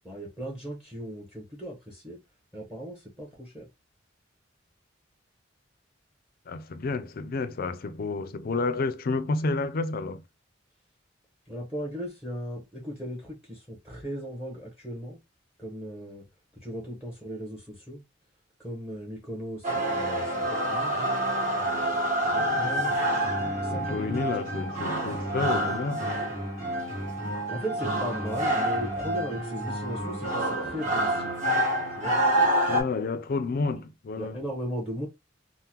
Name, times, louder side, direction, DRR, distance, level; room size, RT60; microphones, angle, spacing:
voice 1, 0.0-2.2 2.5-3.7 11.5-15.2 15.6-16.3 16.5-18.0 18.6-21.0 22.3-23.0 23.6-24.4 27.5-31.3 31.9-32.2 34.2-35.1, equal, 5° right, 0.8 m, -37 dB
voice 2, 6.5-10.2 23.4-26.1 32.7-34.4, left 3 dB, 50° left, 0.4 m, -30 dB
sound 1, 19.6-32.8, right 1 dB, 40° right, 1.2 m, -27 dB
3.6 x 2.1 x 2.8 m
head